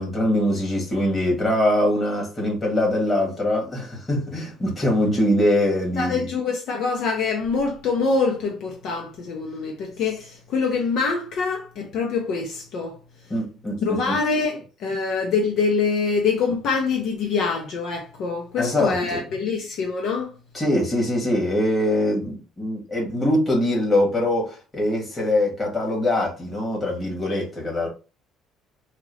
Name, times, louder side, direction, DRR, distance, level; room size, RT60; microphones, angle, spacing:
voice 1, 0.0-6.3 13.3-14.1 18.6-19.2 20.5-27.9, left 1 dB, 20° left, 2.2 m, -23 dB
voice 2, 6.0-13.0 13.8-20.3, left 4 dB, 65° left, 1.0 m, -25 dB
4.5 x 2.5 x 3.3 m
cardioid pair, 120°, 0 cm